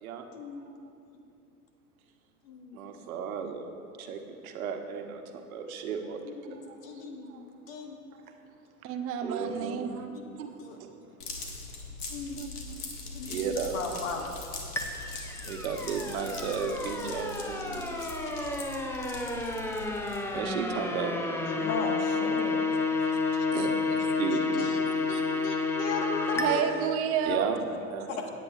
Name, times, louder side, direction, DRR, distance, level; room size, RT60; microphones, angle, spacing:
voice 1, 0.3-0.7 2.5-3.0 6.2-8.0 10.1-10.3 10.6-10.8 12.1-12.6 13.1-13.4 13.7-14.3 17.0-17.2 17.6-18.5 21.5-22.7 23.3-23.5 24.3-26.6 27.7-27.8 28.1-28.3, left 4 dB, 60° left, 3 dB, 1.6 m, -37 dB
voice 2, 2.7-3.7 4.0-6.8 7.3-7.4 9.2-10.1 10.4-11.0 11.4-11.5 12.4-12.8 13.2-13.8 15.4-17.6 20.3-21.2 23.5-24.7 26.5-26.6 27.2-27.6 27.9-28.1, right 6 dB, 65° right, 5 dB, 1.1 m, -35 dB
voice 3, 8.8-10.1 26.3-27.5, right 7 dB, 30° right, 5 dB, 0.7 m, -29 dB
sound 1, 11.2-20.4, left 3 dB, 75° left, 1.9 m, -41 dB
sound 2, 14.8-26.5, left 3 dB, 5° left, 0.6 m, -30 dB
17.5 x 8.6 x 2.4 m, 2.6 s
hypercardioid pair, 95°, 46 cm